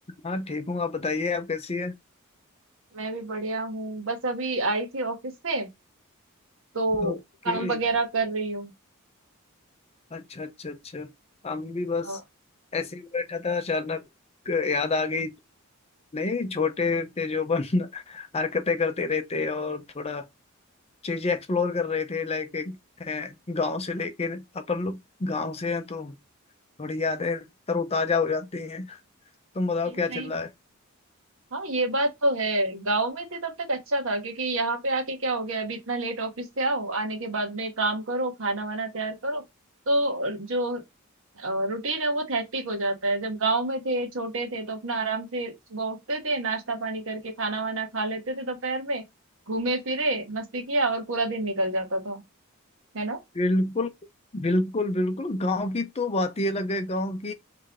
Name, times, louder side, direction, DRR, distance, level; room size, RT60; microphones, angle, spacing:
voice 1, 0.2-1.9 7.0-7.2 7.5-7.8 10.1-11.1 11.4-12.2 12.7-14.0 14.5-15.3 16.1-20.2 21.0-26.2 26.8-29.0 29.5-30.5 53.3-53.9 54.3-57.3, left 3 dB, 30° left, 0.6 m, -28 dB
voice 2, 2.9-5.7 6.7-7.2 7.4-8.7 12.0-12.2 29.9-30.3 31.5-39.4 39.9-40.8 41.4-49.0 49.5-52.2 52.9-53.2, right 2 dB, 65° right, 1.3 m, -28 dB
3.8 x 3.3 x 3.5 m
head